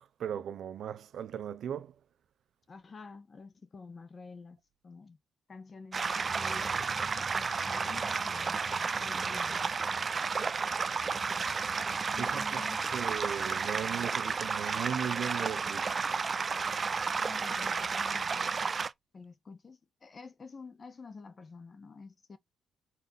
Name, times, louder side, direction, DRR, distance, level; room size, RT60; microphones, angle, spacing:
voice 1, 0.0-1.9 12.2-12.4 12.9-15.9, right 9 dB, 65° right, 0.9 m, -37 dB
voice 2, 2.7-4.6 4.8-5.2 5.5-6.7 7.1-9.8 12.1-12.8 17.3-18.7 19.1-22.4, left 4 dB, 35° left, 1.3 m, -49 dB
sound 1, 5.9-18.9, right 5 dB, 35° right, 0.6 m, -32 dB
5.5 x 4.3 x 4.2 m
cardioid pair, 90°, 0 cm